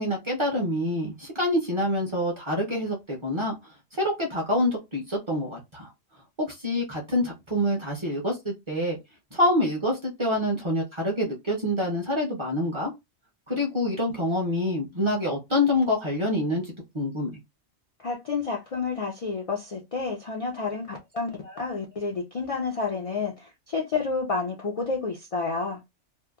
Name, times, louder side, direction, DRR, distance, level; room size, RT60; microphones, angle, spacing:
voice 1, 0.0-3.6 3.9-5.9 6.4-9.0 9.3-12.9 13.5-17.4, left 1 dB, 30° right, 0.6 m, -26 dB
voice 2, 18.0-25.8, left 4 dB, 60° left, 0.3 m, -30 dB
2.8 x 2.1 x 2.2 m
omnidirectional pair, 1.2 m